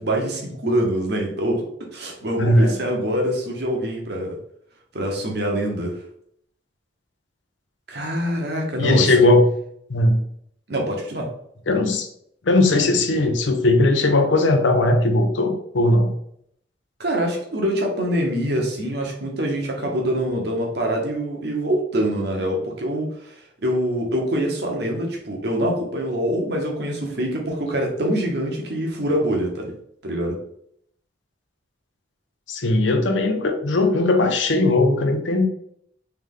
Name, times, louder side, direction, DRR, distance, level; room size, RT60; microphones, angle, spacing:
voice 1, 0.0-1.6 1.9-4.4 4.9-6.0 7.9-9.1 10.7-11.3 17.0-23.3 23.6-29.7 30.0-30.4, right 1 dB, 60° right, 1 dB, 1.0 m, -24 dB
voice 2, 2.4-2.8 8.8-9.5 9.9-10.2 11.7-12.1 12.5-16.1 32.5-35.5, left 2 dB, 80° left, 6 dB, 0.6 m, -18 dB
3.4 x 3.2 x 3.7 m, 0.70 s
head